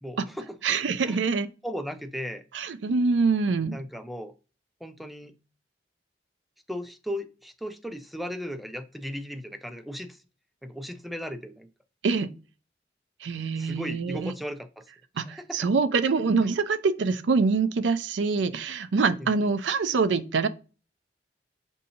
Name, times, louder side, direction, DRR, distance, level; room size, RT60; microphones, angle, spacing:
voice 1, 0.0-0.6 1.0-1.2 1.6-2.4 3.7-4.3 4.8-5.3 6.7-10.2 10.6-11.7 13.6-14.8 15.3-15.6 16.4-16.5 19.2-19.3, equal, ahead, 0.3 m, -36 dB
voice 2, 0.6-1.5 2.5-3.8 12.0-12.3 13.2-14.3 15.2-20.5, right 4 dB, 85° right, 0.4 m, -25 dB
6.3 x 2.7 x 2.7 m
head